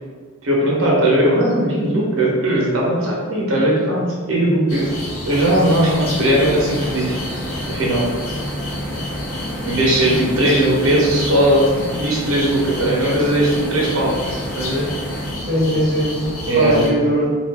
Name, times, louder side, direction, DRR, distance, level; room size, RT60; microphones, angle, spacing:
voice 1, 0.4-7.2 7.7-8.1 9.6-14.8 16.5-16.8, right 1 dB, 80° right, -3 dB, 0.9 m, -18 dB
sound 1, 4.7-16.9, left 1 dB, 90° left, 0.7 m, -30 dB
sound 2, 5.3-15.3, equal, 10° left, 0.3 m, -31 dB
voice 2, 15.4-17.4, equal, 30° right, -8 dB, 1.0 m, -20 dB
2.8 x 2.5 x 3.3 m, 1.5 s
head